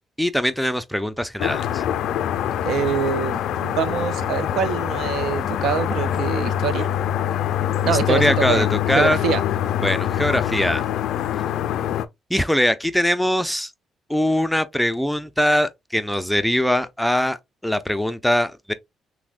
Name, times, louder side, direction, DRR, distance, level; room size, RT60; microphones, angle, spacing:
voice 1, 0.2-1.8 7.9-9.2 9.8-10.8 12.3-13.7 14.1-17.4 17.6-18.7, equal, ahead, 0.4 m, -22 dB
sound 1, 1.4-12.1, left 10 dB, 80° left, 0.3 m, -24 dB
voice 2, 2.6-6.9 7.8-8.6 8.9-9.4, right 6 dB, 75° right, 0.6 m, -24 dB
5.8 x 2.1 x 2.3 m
cardioid pair, 90°, 0 cm